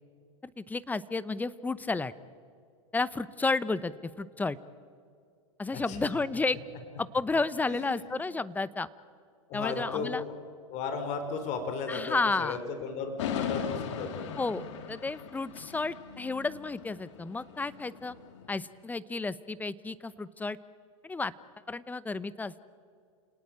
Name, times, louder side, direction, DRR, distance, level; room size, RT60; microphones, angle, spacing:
voice 1, 0.4-2.1 2.9-4.6 5.6-6.6 7.0-8.9 9.5-10.2 11.9-12.6 14.4-18.2 18.5-20.6 21.0-21.3 21.7-22.6, left 3 dB, 10° left, 17 dB, 0.9 m, -32 dB
voice 2, 7.7-8.1 9.5-10.4 10.7-14.2, left 5 dB, 45° left, 7 dB, 4.4 m, -35 dB
sound 1, 13.2-18.5, left 8 dB, 65° left, 3.1 m, -39 dB
29.5 x 18.5 x 8.9 m, 2.2 s
hypercardioid pair, 105°, 17 cm